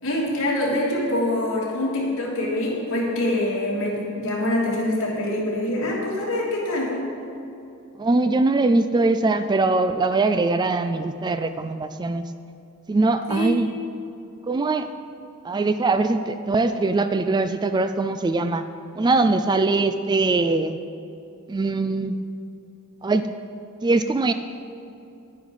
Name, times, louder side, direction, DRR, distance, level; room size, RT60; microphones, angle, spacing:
voice 1, 0.0-7.0 13.3-13.5, left 1 dB, 65° left, -5 dB, 3.1 m, -25 dB
voice 2, 8.0-12.2 12.9-13.7 14.5-14.9 15.4-18.6 18.9-20.8 21.5-22.2 23.0-23.3 23.8-24.3, right 3 dB, 20° right, 10 dB, 0.3 m, -22 dB
10.5 x 9.7 x 5.5 m, 2.7 s
head